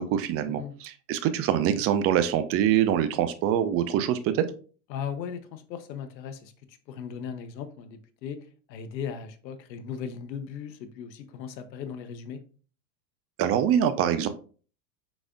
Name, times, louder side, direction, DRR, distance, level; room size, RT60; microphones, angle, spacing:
voice 1, 0.0-4.5 13.4-14.3, right 10 dB, 30° right, 0.4 m, -24 dB
voice 2, 4.9-6.5 6.9-12.4, left 7 dB, 85° left, 0.7 m, -37 dB
4.8 x 4.0 x 2.3 m
hypercardioid pair, 110°, 50 cm